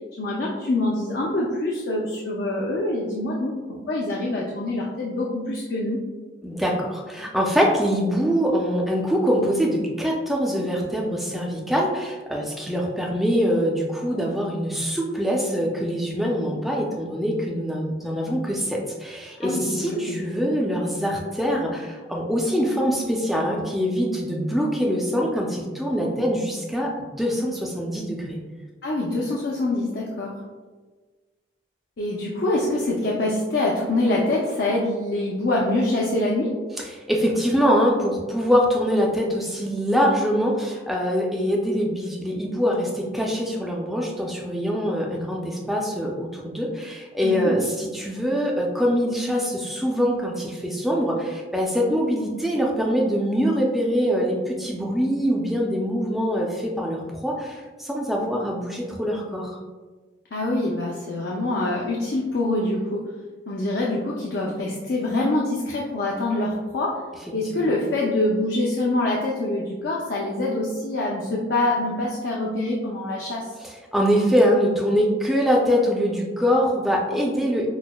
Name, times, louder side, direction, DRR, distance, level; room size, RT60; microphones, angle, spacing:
voice 1, 0.2-6.0 19.4-20.2 28.8-30.3 32.0-36.5 47.2-47.5 60.3-63.0 63.5-67.0 67.3-73.5, left 2 dB, 60° left, -3 dB, 0.5 m, -25 dB
voice 2, 6.4-28.4 36.9-59.6 73.6-77.7, equal, ahead, -2 dB, 0.4 m, -24 dB
6.0 x 2.0 x 2.2 m, 1.3 s
head